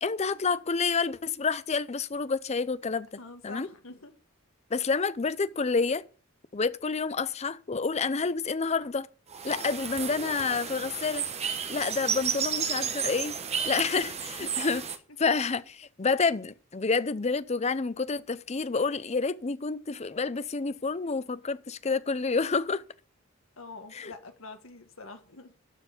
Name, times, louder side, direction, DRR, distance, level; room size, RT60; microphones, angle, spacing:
voice 1, 0.0-3.1 3.4-3.7 4.7-6.0 6.5-9.1 9.4-11.3 11.7-13.3 13.6-14.8 15.2-22.8 23.9-24.1, left 4 dB, 30° left, 0.5 m, -29 dB
voice 2, 3.2-4.1 14.4-14.7 23.6-25.6, left 3 dB, 70° left, 1.8 m, -45 dB
sound 1, 9.3-15.0, right 7 dB, 30° right, 1.0 m, -32 dB
12.5 x 4.7 x 8.2 m
head